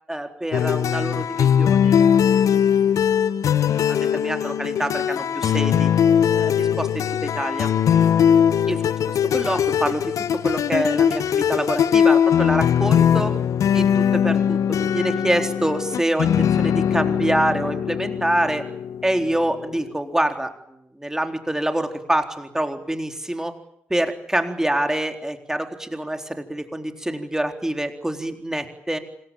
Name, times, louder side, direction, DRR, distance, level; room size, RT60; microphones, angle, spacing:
voice 1, 0.1-2.1 2.5-2.6 3.5-5.9 6.3-7.7 8.7-13.3 13.7-18.6 19.0-20.5 20.9-23.5 23.9-29.0, right 1 dB, 10° right, 5 dB, 4.0 m, -26 dB
sound 1, 0.5-19.9, left 8 dB, 55° left, 1.1 m, -20 dB
26.5 x 21.5 x 9.0 m, 0.74 s
figure-of-eight pair, 40°, 7 cm